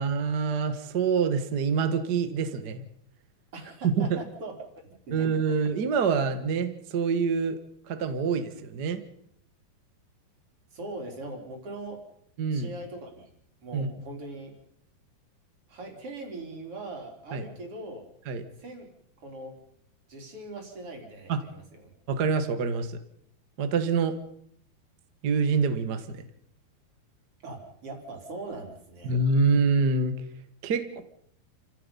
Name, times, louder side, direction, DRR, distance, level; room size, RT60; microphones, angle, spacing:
voice 1, 0.0-2.8 3.8-4.2 5.1-7.6 7.9-9.0 12.4-12.7 13.7-13.9 17.3-17.4 18.3-18.4 21.3-21.4 22.1-23.0 23.6-24.1 25.2-26.3 29.0-30.2 30.6-31.0, right 5 dB, 55° right, 9 dB, 1.1 m, -26 dB
voice 2, 3.5-4.6 4.8-5.3 10.7-12.0 12.5-13.3 13.6-14.5 15.7-18.0 18.6-18.9 19.2-19.6 20.1-21.9 27.4-29.1, right 2 dB, 35° right, 3 dB, 4.2 m, -41 dB
29.5 x 16.0 x 5.5 m, 0.68 s
omnidirectional pair, 4.5 m